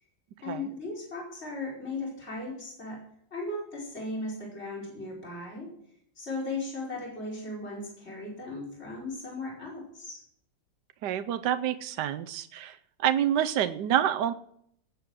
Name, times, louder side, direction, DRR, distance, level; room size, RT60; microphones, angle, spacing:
voice 1, 0.4-3.0 3.3-5.7 6.2-10.2, left 2 dB, 35° left, -3 dB, 5.1 m, -37 dB
voice 2, 11.0-12.8 13.0-14.3, right 10 dB, 70° right, 9 dB, 1.3 m, -27 dB
18.5 x 8.5 x 6.3 m, 0.68 s
omnidirectional pair, 2.0 m